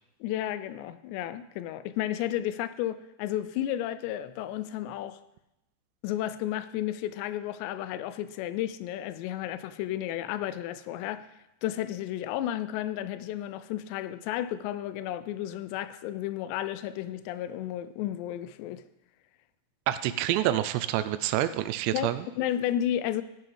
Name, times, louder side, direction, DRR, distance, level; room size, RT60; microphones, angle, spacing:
voice 1, 0.2-5.2 6.0-11.3 11.6-18.9 21.9-22.1 22.4-23.2, left 12 dB, 85° left, 2.8 m, -32 dB
voice 2, 19.9-22.3, right 13 dB, 85° right, 2.7 m, -27 dB
16.0 x 5.6 x 5.5 m
omnidirectional pair, 5.0 m